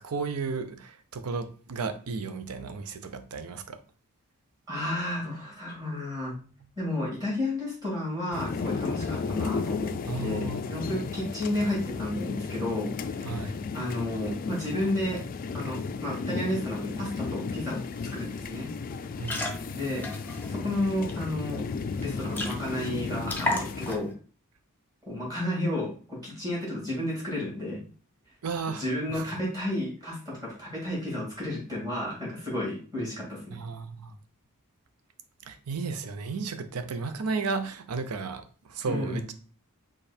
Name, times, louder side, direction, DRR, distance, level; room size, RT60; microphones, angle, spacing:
voice 1, 0.0-3.8 9.1-9.3 10.1-10.7 13.2-13.6 19.2-19.5 28.4-28.8 29.1-29.4 33.5-34.1 35.4-39.3, right 4 dB, 75° right, 0.5 m, -34 dB
voice 2, 4.7-6.4 6.8-15.2 15.5-18.7 19.2-19.4 19.7-20.1 20.5-21.6 22.0-24.1 25.0-27.8 28.8-33.6 38.9-39.3, left 1 dB, 15° right, 2.5 m, -32 dB
sound 1, 8.3-24.0, left 4 dB, 40° left, 0.3 m, -34 dB
sound 2, 17.4-17.5 17.8-18.1 18.4-18.6 19.1-21.1 21.6-21.7 22.0-22.1 22.3-22.9 23.2-24.1, left 1 dB, 10° left, 0.7 m, -33 dB
5.1 x 2.3 x 4.3 m
head